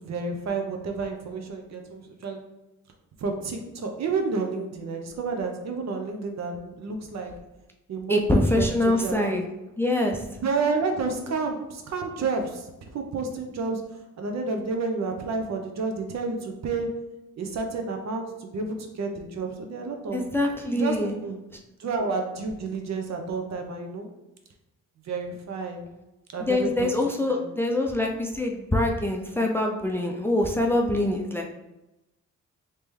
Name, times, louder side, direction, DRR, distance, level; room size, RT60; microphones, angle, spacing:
voice 1, 0.0-2.4 3.2-7.3 7.9-9.4 10.4-13.8 14.2-16.9 17.4-20.3 20.8-21.4 21.8-24.1 25.1-25.8 26.3-27.0 27.3-27.4 30.9-31.3, right 4 dB, 60° right, 4 dB, 0.7 m, -30 dB
voice 2, 8.1-9.4 9.8-10.2 20.1-21.1 26.4-31.5, left 1 dB, 10° left, 1 dB, 0.4 m, -24 dB
3.3 x 2.9 x 3.2 m, 0.97 s
cardioid pair, 75°, 31 cm